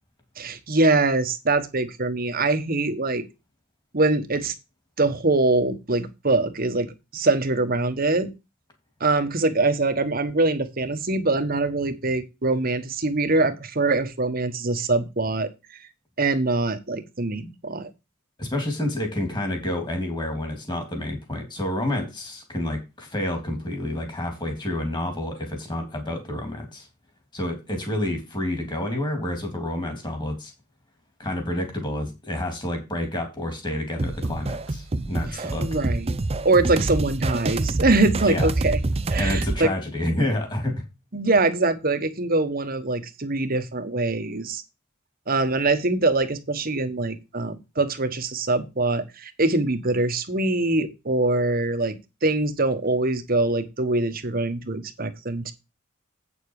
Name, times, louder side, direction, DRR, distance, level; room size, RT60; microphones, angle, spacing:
voice 1, 0.4-3.2 3.9-4.5 5.0-8.3 9.0-15.5 16.2-17.9 35.3-36.2 36.4-38.8 39.1-39.7 41.1-44.6 45.3-52.0 52.2-55.5, right 2 dB, 45° right, 9 dB, 1.3 m, -23 dB
voice 2, 18.4-26.9 27.3-30.5 31.2-35.7 38.3-38.5 39.2-40.8, left 1 dB, 20° left, 4 dB, 3.1 m, -29 dB
sound 1, 34.0-39.6, right 2 dB, 30° right, 0.6 m, -26 dB
8.5 x 7.0 x 4.8 m, 0.25 s
head